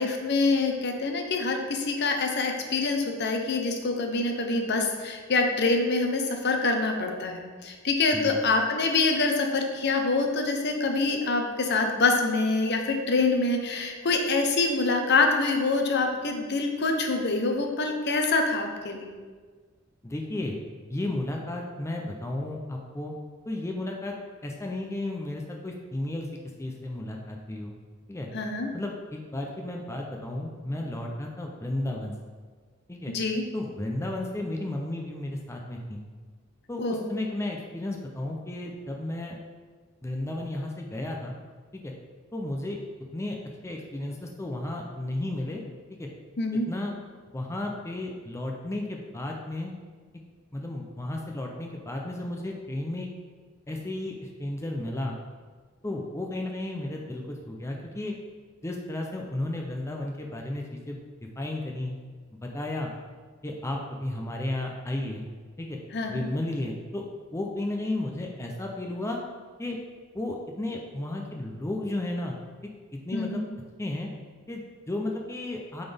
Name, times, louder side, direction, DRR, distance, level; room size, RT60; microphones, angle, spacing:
voice 1, 0.0-19.1 28.3-28.7 33.1-33.4 36.8-37.1 46.4-46.7 65.9-66.3 73.1-73.4, left 3 dB, 55° left, 3 dB, 0.8 m, -25 dB
voice 2, 20.0-20.5 20.9-23.1 23.5-24.1 24.4-26.3 26.6-27.7 28.1-28.3 28.7-32.1 32.9-33.1 33.5-36.0 36.7-39.4 40.0-41.4 41.7-41.9 42.3-42.8 43.1-43.4 43.6-45.6 45.9-46.1 46.5-46.9 47.3-49.7 50.5-53.1 53.7-55.2 55.8-58.1 58.6-61.0 61.4-62.0 62.4-62.9 63.4-65.3 65.6-65.8 66.1-67.0 67.3-69.2 69.6-69.8 70.1-72.4 72.6-72.7 73.1-73.4 73.8-74.1 74.5-75.8, left 1 dB, 15° left, 0 dB, 0.5 m, -33 dB
9.0 x 4.0 x 3.4 m, 1.5 s
head